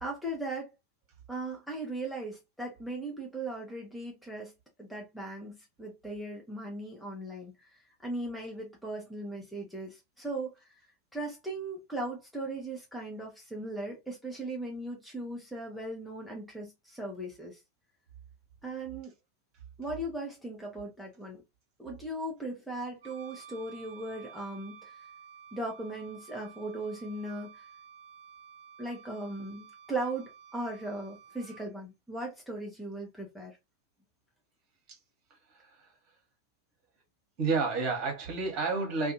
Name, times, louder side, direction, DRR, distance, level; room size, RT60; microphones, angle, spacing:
voice 1, 0.0-0.7 1.3-4.5 4.8-10.8 11.1-17.6 18.6-19.1 19.8-21.4 21.8-25.0 25.5-27.7 28.8-33.6, right 2 dB, ahead, 0.7 m, -38 dB
Wind instrument woodwind instrument, 23.0-31.7, right 7 dB, 60° right, 0.4 m, -52 dB
voice 2, 37.4-39.1, right 4 dB, 35° right, 1.2 m, -30 dB
2.5 x 2.3 x 2.6 m
figure-of-eight pair, 90°, 0 cm